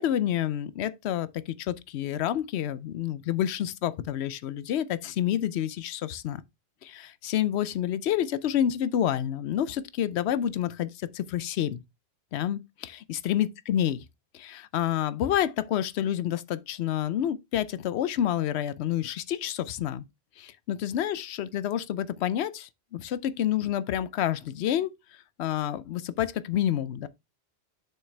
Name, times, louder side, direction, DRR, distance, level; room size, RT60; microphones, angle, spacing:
voice 1, 0.0-6.4 6.8-11.8 12.3-14.0 14.3-20.1 20.4-24.9 25.4-27.1, left 11 dB, 90° left, 0.8 m, -29 dB
7.2 x 5.6 x 3.2 m
omnidirectional pair, 1.1 m